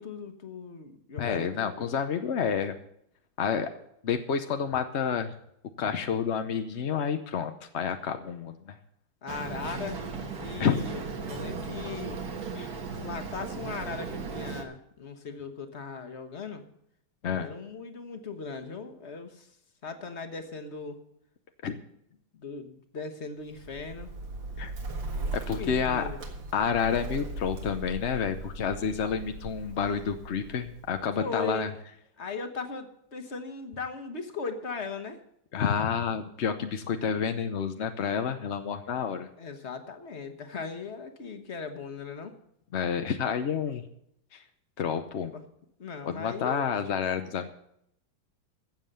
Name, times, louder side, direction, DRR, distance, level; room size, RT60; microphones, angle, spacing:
voice 1, 0.0-2.0 9.2-10.0 10.4-12.2 12.9-16.6 17.3-19.6 19.8-21.0 22.3-24.1 25.1-26.2 31.2-31.7 32.2-35.2 38.9-39.0 39.4-42.3 45.2-45.4 45.8-46.6, left 4 dB, 40° left, 7 dB, 1.4 m, -38 dB
voice 2, 1.2-2.8 3.4-3.7 4.0-5.3 5.8-8.8 10.6-10.9 12.5-12.7 17.2-17.5 21.6-21.8 24.6-24.7 25.3-26.0 26.5-31.7 35.5-39.3 42.7-43.9 44.3-44.4 44.8-45.3 46.0-47.5, left 7 dB, 60° left, 8 dB, 0.7 m, -29 dB
Boat Water vehicle, 9.3-14.6, right 4 dB, 50° right, 1.9 m, -36 dB
Bird, 23.5-31.3, right 2 dB, 70° right, 2.5 m, -38 dB
15.0 x 7.5 x 6.7 m, 0.75 s
omnidirectional pair, 2.2 m